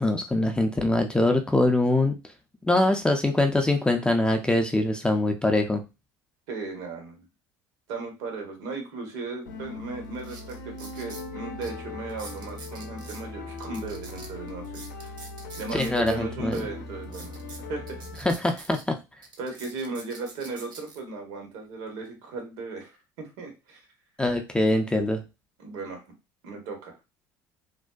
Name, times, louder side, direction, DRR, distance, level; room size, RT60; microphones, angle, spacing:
voice 1, 0.0-2.1 2.6-5.8 15.7-16.6 18.3-18.9 24.2-25.2, left 1 dB, 10° left, 4 dB, 0.4 m, -23 dB
voice 2, 6.5-7.3 7.9-15.1 15.6-18.0 19.4-23.8 25.6-26.0 26.4-27.0, right 3 dB, 70° right, 2 dB, 1.0 m, -36 dB
sound 1, 9.5-18.2, left 2 dB, 80° left, 0.5 m, -39 dB
sound 2, 9.5-9.6 10.1-11.3 11.6-11.7 12.1-13.2 13.6-16.1 16.5-16.6 17.0-18.8 19.2-21.0 21.6-21.9, right 3 dB, 45° right, 0.8 m, -45 dB
2.5 x 2.1 x 2.3 m, 0.27 s
hypercardioid pair, 80°, 11 cm